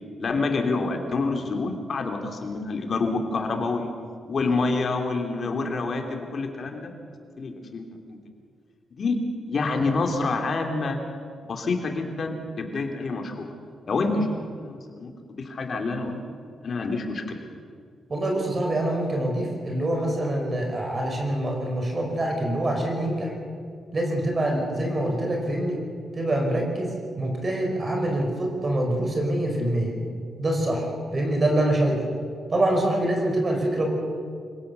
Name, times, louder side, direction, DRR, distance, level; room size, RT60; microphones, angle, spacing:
voice 1, 0.2-3.9 4.2-6.9 7.4-8.2 9.0-9.2 9.5-11.0 11.5-13.5 13.9-15.1 15.4-16.2 16.6-17.4, left 3 dB, 50° left, 3 dB, 3.2 m, -27 dB
voice 2, 18.1-23.3 23.9-25.8 26.2-29.9 30.4-30.9 31.1-32.0 32.5-33.9, right 1 dB, 35° right, 2 dB, 5.0 m, -25 dB
25.5 x 17.0 x 7.0 m, 2.2 s
cardioid pair, 95°, 0 cm